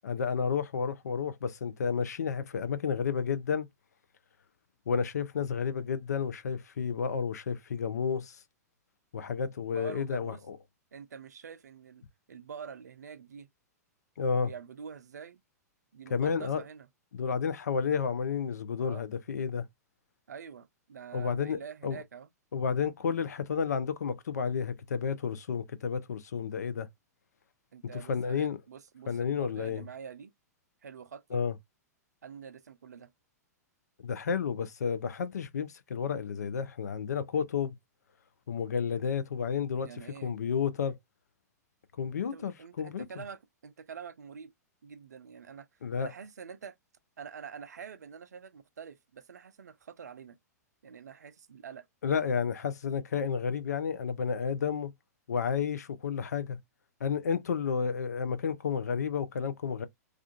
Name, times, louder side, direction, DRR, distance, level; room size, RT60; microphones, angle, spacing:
voice 1, 0.0-3.7 4.9-8.4 9.1-10.6 14.2-14.5 16.1-16.6 17.1-19.7 21.1-22.0 22.5-26.9 27.9-28.6 29.1-29.8 31.3-31.5 34.0-37.8 38.5-39.9 40.2-41.0 42.0-43.1 45.8-46.1 52.0-54.9 55.3-56.6 57.0-59.9, left 6 dB, 70° left, 0.5 m, -31 dB
voice 2, 9.7-10.4 10.9-12.0 12.3-13.5 14.4-15.4 15.9-16.9 18.8-19.0 20.3-22.3 27.7-30.3 30.8-31.4 32.2-33.1 39.8-40.4 42.2-44.5 44.8-46.8 47.2-50.4 50.8-51.9, right 7 dB, 75° right, 0.4 m, -46 dB
2.4 x 2.3 x 2.3 m
figure-of-eight pair, 105°, 9 cm